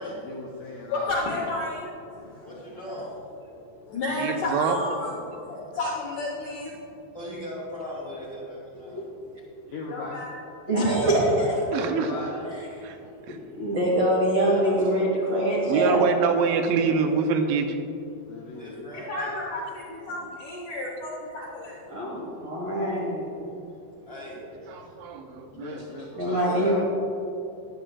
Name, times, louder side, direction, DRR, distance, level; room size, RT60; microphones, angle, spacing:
voice 1, 0.0-1.4 9.7-10.3 11.8-12.4 18.2-19.1 24.7-26.3, left 3 dB, 90° left, -2 dB, 2.0 m, -39 dB
voice 2, 0.9-2.6 3.9-6.8 9.9-10.4 10.7-11.1 18.9-21.8, left 2 dB, 70° left, -4 dB, 1.9 m, -32 dB
voice 3, 2.3-4.0 5.6-5.8 7.0-9.0 12.0-13.1 13.5-13.6 14.3-15.6 18.5-19.8 22.3-22.5 24.0-24.7 25.3-25.5 26.4-26.8, equal, 15° left, -7 dB, 1.5 m, -40 dB
voice 4, 4.2-4.8 11.7-12.1 13.3-13.4 15.7-17.8 24.7-26.3, right 6 dB, 90° right, 6 dB, 3.0 m, -25 dB
voice 5, 10.7-11.6 12.2-12.3 13.6-16.1 21.9-23.5 26.2-26.8, right 1 dB, 55° right, -6 dB, 1.7 m, -24 dB
15.0 x 11.0 x 2.4 m, 2.7 s
omnidirectional pair, 5.1 m